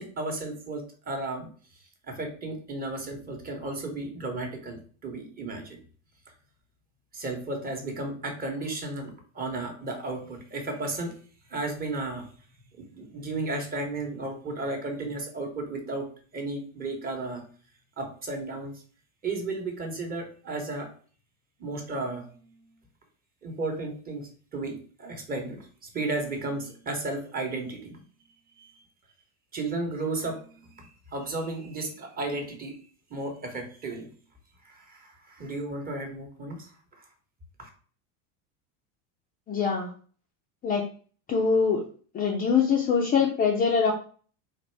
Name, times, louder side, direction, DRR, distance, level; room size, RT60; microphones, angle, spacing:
voice 1, 0.0-1.5 1.8-5.8 7.1-11.2 11.5-12.3 12.7-17.4 18.0-18.7 19.2-20.9 21.6-22.6 23.4-28.0 28.6-28.8 29.5-32.8 33.1-34.1 34.6-37.1 37.6-37.7, right 2 dB, 25° right, 3 dB, 1.0 m, -34 dB
voice 2, 39.5-39.9 40.6-40.9 41.3-41.9 42.1-43.9, left 6 dB, 20° left, 0 dB, 0.5 m, -23 dB
4.1 x 2.6 x 4.5 m, 0.42 s
supercardioid pair, 150°, 39 cm